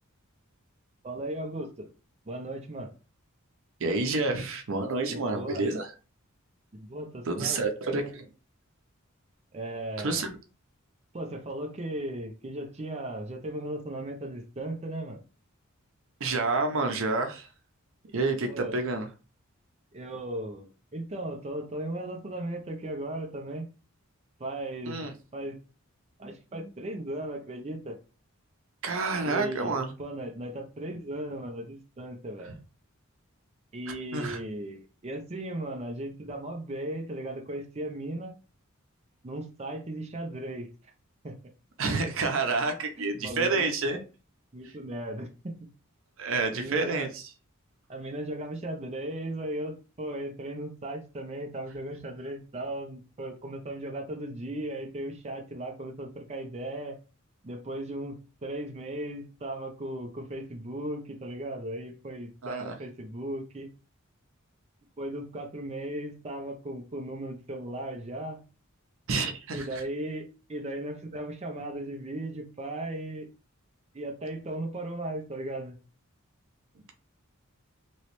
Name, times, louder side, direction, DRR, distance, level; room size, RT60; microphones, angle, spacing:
voice 1, 1.0-1.9 2.3-2.9 5.1-5.7 6.7-7.6 9.5-10.2 11.1-15.2 18.5-18.8 19.9-23.7 24.4-25.0 25.3-25.6 26.2-28.0 29.2-32.5 33.7-38.4 39.2-40.7 41.2-41.4 43.0-43.7 44.5-45.7 46.5-47.1 47.9-57.0 57.4-58.2 58.4-63.7 65.0-68.4 69.5-73.3 73.9-75.8, right 1 dB, 30° right, 0.6 m, -37 dB
voice 2, 3.8-5.9 7.3-8.3 10.0-10.3 16.2-17.5 18.1-19.1 24.9-25.1 28.8-29.9 34.1-34.4 41.8-44.0 44.6-44.7 46.2-47.3 62.4-62.8 69.1-69.8, right 3 dB, 65° right, 0.7 m, -29 dB
3.1 x 3.0 x 3.0 m
head